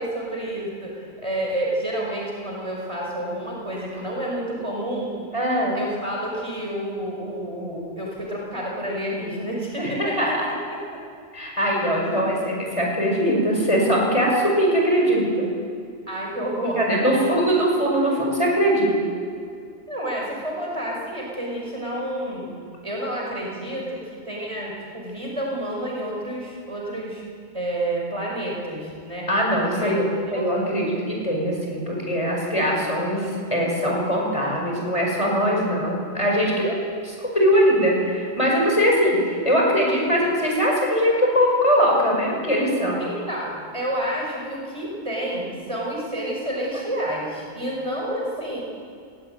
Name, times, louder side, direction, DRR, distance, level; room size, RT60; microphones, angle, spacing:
voice 1, 0.0-5.3 5.7-10.6 10.9-11.0 12.0-12.2 16.1-16.8 17.1-17.2 19.9-22.5 22.8-27.2 27.5-29.3 29.7-30.5 43.0-48.6, right 1 dB, 25° right, -2 dB, 5.9 m, -29 dB
voice 2, 5.3-5.8 9.8-10.5 11.3-15.5 16.8-18.9 29.3-36.7 37.0-43.0, equal, 25° left, -2 dB, 6.3 m, -21 dB
22.0 x 17.5 x 9.5 m, 2.4 s
omnidirectional pair, 1.3 m